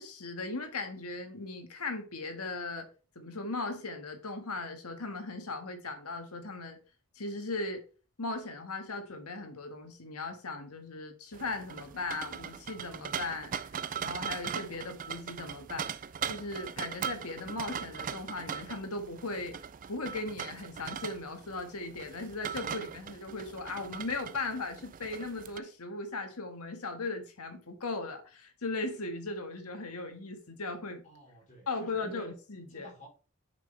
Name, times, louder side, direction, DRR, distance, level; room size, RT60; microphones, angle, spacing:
voice 1, 0.0-2.9 3.1-6.8 7.1-7.8 8.2-13.7 14.0-15.9 16.3-19.5 19.9-31.0 31.7-32.9, left 3 dB, 90° left, 1.7 m, -38 dB
sound 1, 11.3-25.6, right 8 dB, 40° right, 0.4 m, -40 dB
voice 2, 31.0-32.3 32.7-33.1, right 1 dB, 35° left, 3.7 m, -51 dB
7.5 x 6.1 x 3.3 m
head